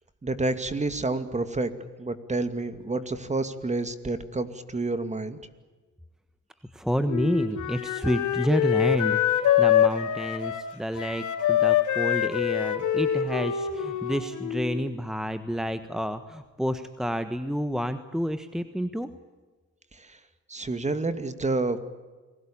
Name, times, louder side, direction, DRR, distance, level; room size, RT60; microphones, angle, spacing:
voice 1, 0.2-1.7 2.0-5.4 19.9-20.2 20.5-21.8, right 2 dB, 25° right, 11 dB, 2.5 m, -29 dB
voice 2, 6.7-19.1, equal, ahead, 10 dB, 1.4 m, -29 dB
Wind instrument woodwind instrument, 7.1-14.8, left 10 dB, 75° left, 3.5 m, -25 dB
29.5 x 20.5 x 8.8 m, 1.3 s
cardioid pair, 90°, 30 cm